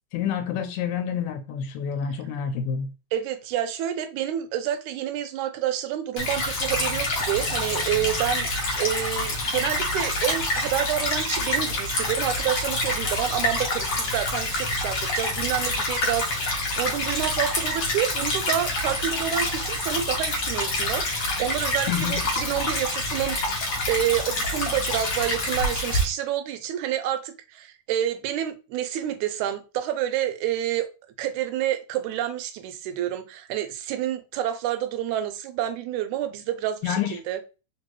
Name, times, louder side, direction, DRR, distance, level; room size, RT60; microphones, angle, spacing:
voice 1, 0.1-2.9 21.9-22.3 36.8-37.2, left 8 dB, 80° left, 1.9 m, -28 dB
voice 2, 3.1-8.5 8.8-30.9 31.2-37.4, right 11 dB, 85° right, 2.0 m, -28 dB
Stream / Trickle dribble, 6.2-26.0, left 1 dB, 65° left, 1.1 m, -27 dB
4.5 x 2.6 x 3.1 m
omnidirectional pair, 3.4 m